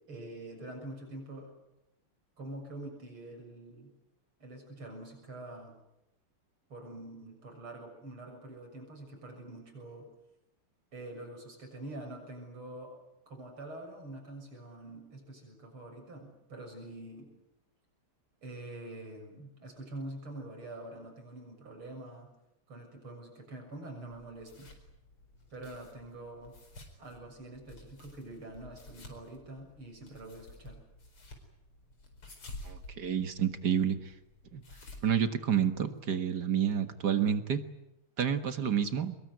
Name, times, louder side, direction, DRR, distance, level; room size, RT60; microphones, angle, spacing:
voice 1, 0.1-1.5 2.4-3.9 4.4-5.8 6.7-10.1 10.9-13.0 13.3-17.3 18.4-22.3 22.7-24.7 25.5-26.5 27.0-30.8, right 1 dB, 70° right, 3 dB, 7.9 m, -45 dB
sound 1, 24.1-36.0, left 2 dB, 75° left, 5.6 m, -52 dB
voice 2, 32.7-34.0 34.5-34.6 35.0-37.6 38.2-39.2, right 8 dB, 50° right, 9 dB, 2.0 m, -29 dB
25.0 x 22.0 x 9.4 m, 0.86 s
omnidirectional pair, 2.4 m